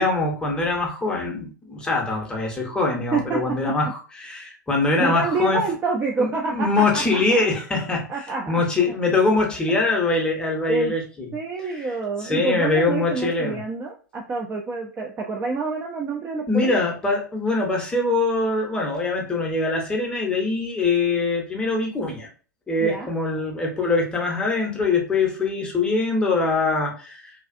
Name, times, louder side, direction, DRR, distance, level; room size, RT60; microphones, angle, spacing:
voice 1, 0.0-5.6 6.2-8.1 8.5-11.3 11.6-11.7 12.2-13.6 16.5-22.3 22.7-27.4, left 3 dB, 10° left, 0 dB, 0.7 m, -23 dB
voice 2, 3.1-3.7 5.0-7.4 8.1-8.6 10.7-10.9 11.3-16.8 22.8-23.1, right 4 dB, 15° right, 0 dB, 0.3 m, -27 dB
2.5 x 2.3 x 2.4 m, 0.38 s
figure-of-eight pair, 100°, 10 cm